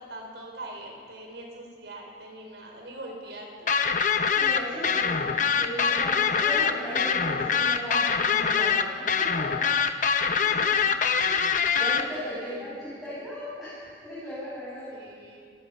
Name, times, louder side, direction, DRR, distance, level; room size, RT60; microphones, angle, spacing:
voice 1, 0.0-3.8 10.3-10.9 12.3-12.8 14.9-15.5, right 1 dB, 85° right, 1 dB, 4.8 m, -43 dB
sound 1, 3.7-12.0, left 6 dB, 45° left, 0.9 m, -24 dB
voice 2, 4.3-5.3 5.5-9.7 10.3-10.5 11.2-14.9, left 1 dB, ahead, -11 dB, 7.6 m, -37 dB
29.0 x 18.5 x 5.6 m, 2.2 s
head